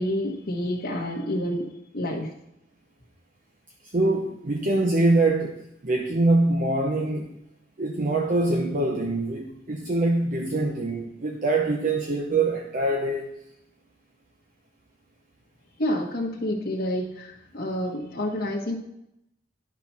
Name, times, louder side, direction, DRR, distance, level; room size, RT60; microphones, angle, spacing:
voice 1, 0.0-2.3 15.8-18.8, left 1 dB, 55° left, -3 dB, 1.3 m, -28 dB
voice 2, 3.8-7.4 7.8-13.3, right 2 dB, 50° right, 0 dB, 0.9 m, -24 dB
10.5 x 4.4 x 5.6 m, 0.79 s
head